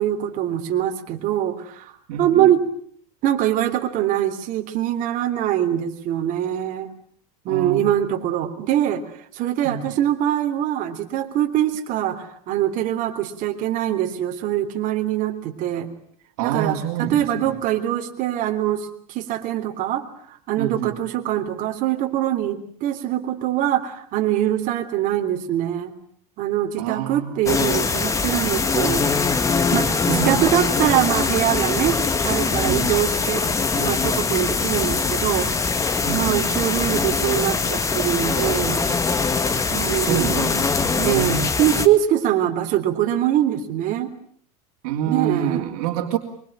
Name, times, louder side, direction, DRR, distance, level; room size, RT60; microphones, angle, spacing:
voice 1, 0.0-1.9 2.2-2.6 3.2-6.9 7.5-9.0 9.3-15.9 16.4-25.9 26.4-29.2 29.7-30.0 30.3-32.0 32.2-33.5 33.7-35.5 36.1-38.9 39.8-40.3 41.0-44.1 45.1-45.7, right 11 dB, 45° right, 6 dB, 3.5 m, -23 dB
voice 2, 2.1-2.5 7.5-7.9 9.6-9.9 16.4-17.6 20.6-20.9 26.8-27.5 29.7-30.5 32.6-32.9 36.0-36.4 39.7-41.4 44.8-46.2, right 10 dB, 65° right, -2 dB, 3.6 m, -27 dB
sound 1, 27.5-41.9, left 4 dB, 15° left, 1.8 m, -22 dB
24.0 x 24.0 x 9.0 m, 0.63 s
supercardioid pair, 140°, 19 cm